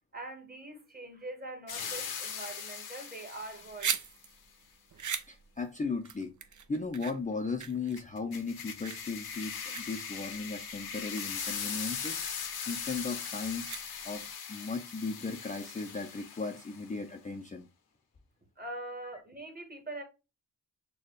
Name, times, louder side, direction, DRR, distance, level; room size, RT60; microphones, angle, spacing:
voice 1, 0.1-3.9 18.6-20.0, right 2 dB, 25° right, 1.5 m, -43 dB
sound 1, 1.7-4.0 8.0-16.9, left 7 dB, 85° left, 0.9 m, -40 dB
sound 2, 3.4-14.3, right 7 dB, 55° right, 0.6 m, -41 dB
voice 2, 5.3-6.3 6.7-12.2 12.7-13.7 14.0-17.7, left 4 dB, 20° left, 0.5 m, -36 dB
6.5 x 2.3 x 3.3 m
wide cardioid pair, 130°, 36 cm